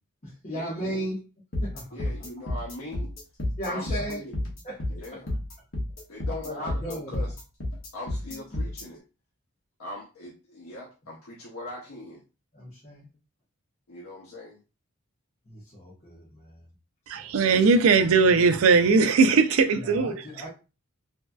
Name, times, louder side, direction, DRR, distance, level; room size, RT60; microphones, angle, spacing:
voice 1, 0.2-1.3 1.6-1.9 3.6-4.2 4.6-4.8 5.1-5.2 6.3-7.3 12.5-13.1 15.5-16.7 17.1-17.3 19.7-20.5, equal, 35° left, 1.0 m, -36 dB
sound 1, 1.5-8.8, left 1 dB, 60° left, 1.0 m, -30 dB
voice 2, 1.9-3.1 3.6-4.3 5.0-5.3 6.1-7.3 7.9-9.0 9.8-12.2 13.9-14.6, left 1 dB, 90° left, 0.7 m, -40 dB
voice 3, 17.1-20.2, right 4 dB, 70° right, 0.4 m, -19 dB
3.0 x 2.7 x 2.2 m
head